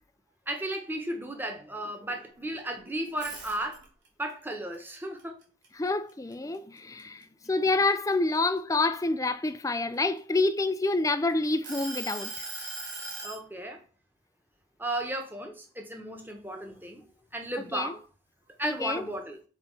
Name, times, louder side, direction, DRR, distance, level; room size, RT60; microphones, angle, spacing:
voice 1, 0.5-3.9 4.2-5.4 13.2-13.8 14.8-17.0 17.3-18.0 18.6-19.4, right 1 dB, 10° right, 1.2 m, -34 dB
sound 1, 3.1-4.1 4.5-6.3 6.8-7.0 7.4-9.3 10.0-11.1 11.6-13.4, right 2 dB, 70° right, 2.7 m, -39 dB
voice 2, 5.8-12.3 17.7-17.9 18.6-19.1, left 3 dB, 15° left, 0.4 m, -27 dB
7.0 x 4.1 x 5.4 m
head